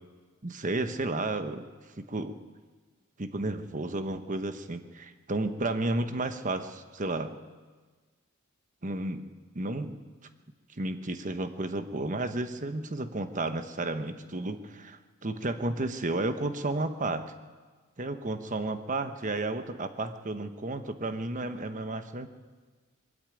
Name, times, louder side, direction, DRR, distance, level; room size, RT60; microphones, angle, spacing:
voice 1, 0.4-1.7 2.0-2.3 3.2-7.4 8.8-9.3 9.5-10.0 10.8-17.3 18.0-22.3, right 2 dB, 35° right, 9 dB, 1.0 m, -32 dB
21.0 x 13.5 x 9.1 m, 1.4 s
head